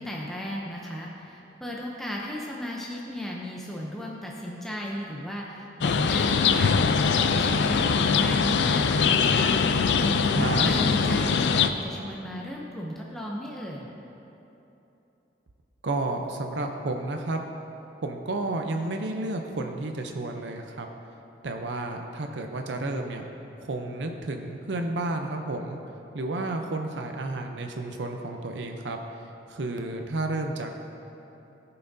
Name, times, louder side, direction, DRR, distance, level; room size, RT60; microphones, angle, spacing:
voice 1, 0.0-13.9, equal, ahead, -3 dB, 0.6 m, -36 dB
sound 1, 5.8-11.7, left 5 dB, 75° left, 0.4 m, -22 dB
voice 2, 10.4-10.7 15.8-17.4 18.0-20.9 21.4-23.2 23.6-25.8 26.1-29.0 29.5-30.8, right 2 dB, 85° right, 3 dB, 0.6 m, -31 dB
16.5 x 5.8 x 2.7 m, 3.0 s
head